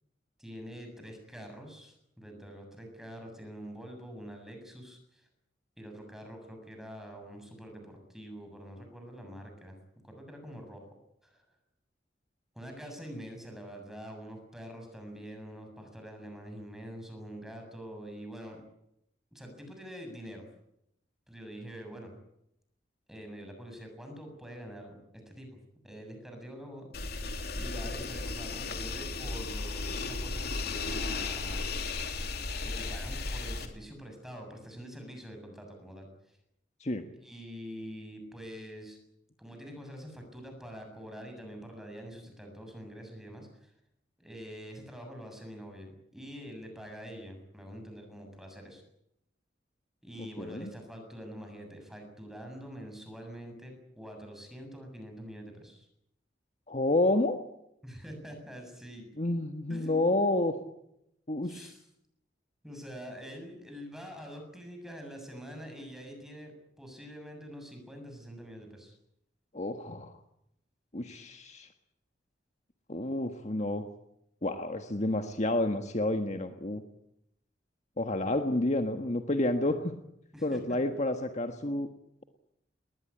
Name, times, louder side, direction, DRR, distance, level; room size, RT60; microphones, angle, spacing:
voice 1, 0.4-5.3 5.8-9.8 10.0-10.9 11.2-11.4 12.5-18.6 19.3-20.4 21.3-22.1 23.1-24.9 25.3-31.7 32.6-36.4 37.2-39.0 39.4-43.7 44.2-48.8 50.0-55.9 57.8-59.1 59.7-60.1 61.4-61.8 62.6-66.5 66.8-68.9 80.3-81.0, equal, ahead, 3 dB, 7.2 m, -45 dB
sound 1, 26.9-33.7, left 3 dB, 60° left, 3.0 m, -35 dB
voice 2, 50.2-50.7 56.7-57.4 59.2-60.5 61.3-61.7 69.5-70.1 70.9-71.7 72.9-73.8 74.4-76.8 78.0-79.9 80.4-81.9, left 2 dB, 40° left, 6 dB, 1.5 m, -29 dB
20.5 x 20.0 x 9.8 m, 0.79 s
head